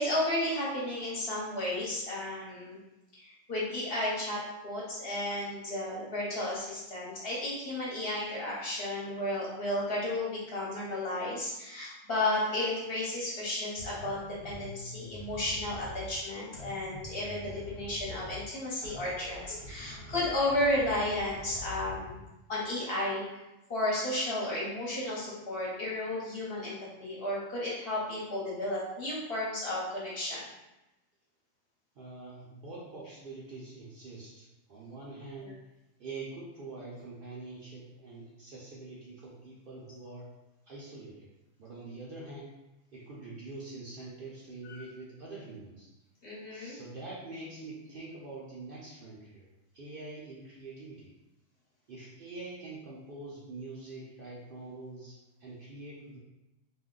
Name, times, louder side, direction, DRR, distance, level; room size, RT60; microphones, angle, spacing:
voice 1, 0.0-2.8 3.1-14.2 14.4-22.1 22.5-23.2 23.7-30.5 35.4-35.5 44.7-44.8 46.2-46.8, left 1 dB, 50° left, -6 dB, 1.0 m, -33 dB
sound 1, 13.8-16.2 16.5-18.5 18.8-22.3, left 3 dB, 75° left, 1.0 m, -45 dB
voice 2, 32.0-35.6 36.0-40.3 40.7-41.3 41.6-42.5 42.9-45.9 46.5-49.5 49.7-51.1 51.9-56.2, right 3 dB, 55° right, -6 dB, 0.7 m, -45 dB
2.6 x 2.2 x 3.6 m, 0.98 s
omnidirectional pair, 1.3 m